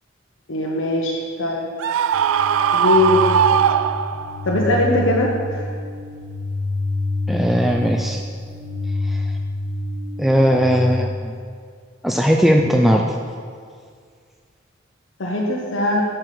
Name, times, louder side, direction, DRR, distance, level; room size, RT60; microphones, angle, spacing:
voice 1, 0.5-1.6 2.7-3.2 4.4-5.7 15.2-16.0, left 2 dB, 80° left, -3 dB, 1.0 m, -20 dB
Screaming, 1.8-4.5, right 8 dB, 90° right, 0.3 m, -19 dB
sound 1, 2.1-11.1, left 2 dB, 40° right, 1.0 m, -27 dB
voice 2, 7.3-8.2 9.0-9.3 10.2-11.4 12.0-13.2, equal, ahead, 2 dB, 0.4 m, -18 dB
6.7 x 5.9 x 7.4 m, 2.1 s
head